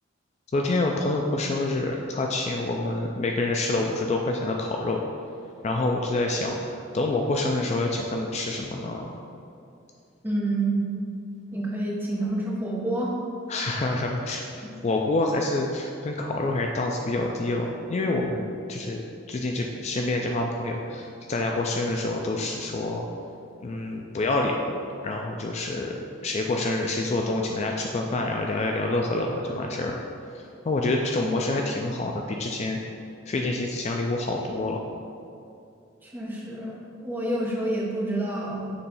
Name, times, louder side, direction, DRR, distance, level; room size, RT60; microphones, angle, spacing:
voice 1, 0.5-5.0 5.6-9.1 13.5-14.4 14.8-18.4 18.7-19.0 19.3-23.1 23.6-25.9 26.2-30.0 30.3-32.8 33.3-34.8, left 2 dB, 35° left, 1 dB, 0.3 m, -27 dB
voice 2, 10.2-10.9 11.5-13.1 14.6-14.8 36.0-38.7, right 2 dB, 10° right, -5 dB, 1.0 m, -28 dB
6.9 x 3.2 x 5.4 m, 2.6 s
head